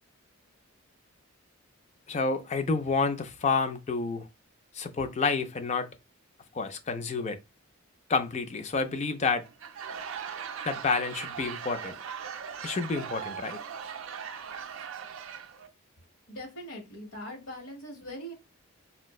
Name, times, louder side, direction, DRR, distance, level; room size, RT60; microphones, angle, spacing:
voice 1, 2.1-4.3 4.7-5.9 6.5-7.4 8.1-9.4 10.7-12.0 12.6-13.6, left 4 dB, 30° left, 0.3 m, -29 dB
Laughter / Crowd, 9.4-15.7, right 7 dB, 60° right, 0.4 m, -39 dB
voice 2, 16.3-18.3, equal, 75° left, 1.1 m, -41 dB
4.2 x 2.0 x 2.3 m
head